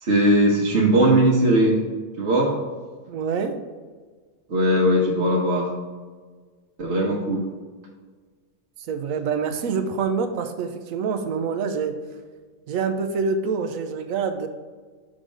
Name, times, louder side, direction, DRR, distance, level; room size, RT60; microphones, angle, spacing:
voice 1, 0.0-1.8 2.2-2.6 4.5-5.7 6.8-7.5, right 1 dB, 55° right, -3 dB, 1.2 m, -19 dB
voice 2, 3.1-3.5 8.9-12.0 12.7-14.5, right 5 dB, 75° right, 8 dB, 1.1 m, -26 dB
6.1 x 3.9 x 5.0 m, 1.5 s
omnidirectional pair, 1.5 m